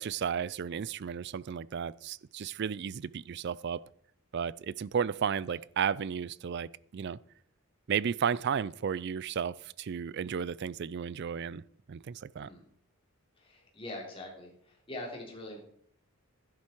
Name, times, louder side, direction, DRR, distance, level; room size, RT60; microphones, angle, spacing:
voice 1, 0.0-3.8 4.3-7.2 7.9-11.6 11.9-12.5, right 7 dB, 50° right, 21 dB, 0.4 m, -33 dB
voice 2, 13.4-15.6, left 1 dB, 25° left, -2 dB, 3.6 m, -43 dB
12.0 x 11.0 x 4.6 m, 0.63 s
head